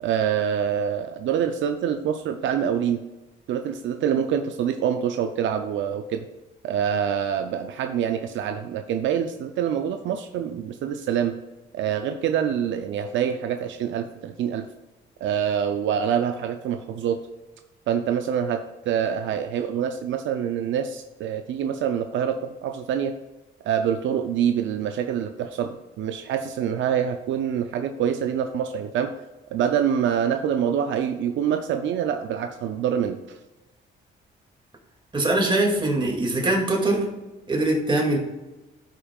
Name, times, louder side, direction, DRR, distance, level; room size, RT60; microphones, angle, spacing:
voice 1, 0.0-3.0 3.5-6.3 6.6-11.4 11.7-14.7 15.2-17.2 17.9-23.1 23.6-29.1 29.5-33.2, right 8 dB, 75° right, 7 dB, 0.5 m, -25 dB
voice 2, 35.1-37.0 37.5-38.2, right 2 dB, 25° right, 0 dB, 2.2 m, -22 dB
13.0 x 5.2 x 2.4 m, 1.1 s
cardioid pair, 90°, 20 cm